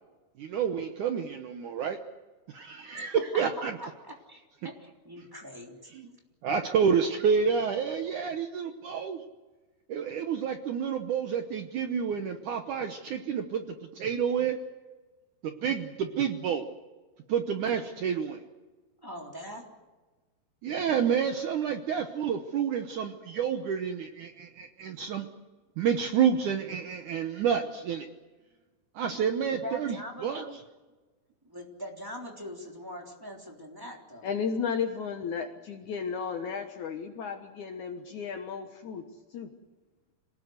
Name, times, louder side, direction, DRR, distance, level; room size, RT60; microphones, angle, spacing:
voice 1, 0.4-2.0 2.5-3.8 5.9-6.2 6.4-9.2 9.9-14.6 15.4-16.7 17.3-18.4 20.6-25.3 25.8-28.1 29.0-30.0 30.2-30.4, right 7 dB, 65° right, 6 dB, 2.1 m, -29 dB
voice 2, 3.8-5.9 19.0-19.6 29.5-30.6 31.5-34.3, left 1 dB, 5° right, 1 dB, 2.9 m, -42 dB
voice 3, 34.2-39.0 39.3-39.5, left 6 dB, 65° left, 6 dB, 2.2 m, -34 dB
26.5 x 18.5 x 8.0 m, 1.2 s
omnidirectional pair, 4.6 m